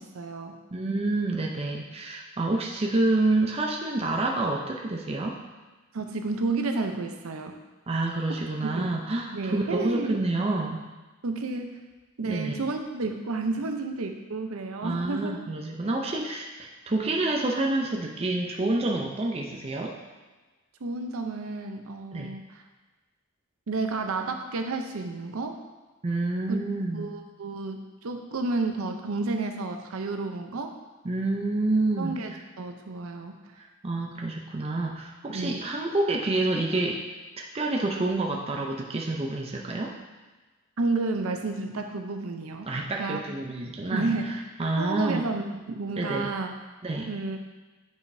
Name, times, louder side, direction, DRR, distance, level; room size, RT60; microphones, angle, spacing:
voice 1, 0.0-0.5 5.9-7.6 8.7-8.9 9.3-10.2 11.2-11.8 12.2-15.4 20.8-22.6 23.7-25.6 26.5-26.6 26.9-30.7 32.0-33.3 35.3-35.6 40.8-43.2 43.9-44.4 44.8-46.5 47.1-47.4, right 3 dB, 75° right, 5 dB, 0.6 m, -31 dB
voice 2, 0.7-5.4 7.9-10.8 12.2-12.6 14.8-20.0 22.1-22.3 26.0-27.1 31.0-32.2 33.8-37.0 37.4-39.9 42.7-45.3 46.0-46.3 46.8-47.1, right 2 dB, 30° right, 0 dB, 0.5 m, -28 dB
8.4 x 4.9 x 2.7 m, 1.3 s
head